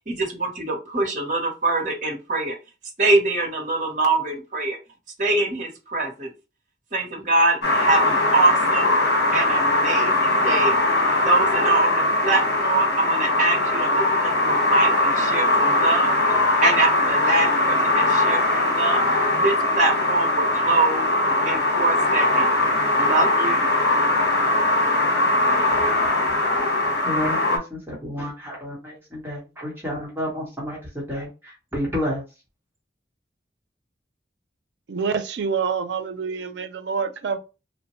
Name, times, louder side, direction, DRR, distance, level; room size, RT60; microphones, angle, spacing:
voice 1, 0.1-2.6 3.0-4.8 5.2-6.3 6.9-8.9 9.3-10.8 11.2-16.2 16.6-19.0 19.4-21.1 21.5-22.5 22.9-23.7, right 2 dB, 45° right, 0.9 m, -23 dB
sound 1, 7.6-27.6, left 2 dB, 85° left, 1.0 m, -21 dB
voice 2, 27.0-32.2, left 1 dB, 15° right, 1.0 m, -30 dB
voice 3, 34.9-37.4, right 6 dB, 90° right, 0.5 m, -26 dB
3.1 x 2.1 x 2.9 m
head